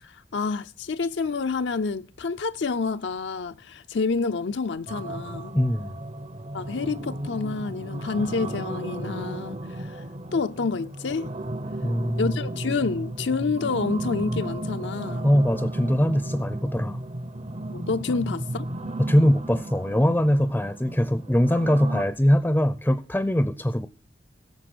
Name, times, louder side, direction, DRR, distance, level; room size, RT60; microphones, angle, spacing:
voice 1, 0.0-5.5 6.5-10.0 10.3-11.3 12.2-15.3 17.7-18.6, left 4 dB, 70° left, 0.5 m, -28 dB
sound 1, 4.9-22.0, right 1 dB, 35° right, 0.7 m, -34 dB
voice 2, 5.5-5.9 11.8-12.2 15.2-17.0 19.0-23.9, equal, 10° left, 0.5 m, -22 dB
16.0 x 6.9 x 6.1 m
head